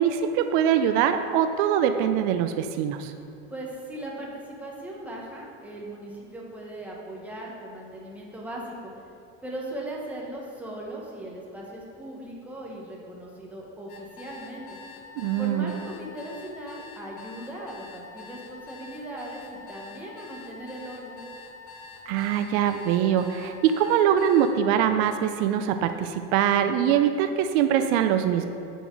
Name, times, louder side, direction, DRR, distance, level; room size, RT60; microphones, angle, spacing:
voice 1, 0.0-3.1 15.2-15.7 22.1-28.5, right 9 dB, 80° right, 8 dB, 0.5 m, -23 dB
voice 2, 3.5-8.9 9.4-14.6 15.4-21.2, right 1 dB, 5° right, -3 dB, 1.0 m, -38 dB
sound 1, 13.9-24.5, left 4 dB, 70° left, 1.3 m, -45 dB
8.1 x 4.0 x 4.6 m, 2.5 s
cardioid pair, 145°, 32 cm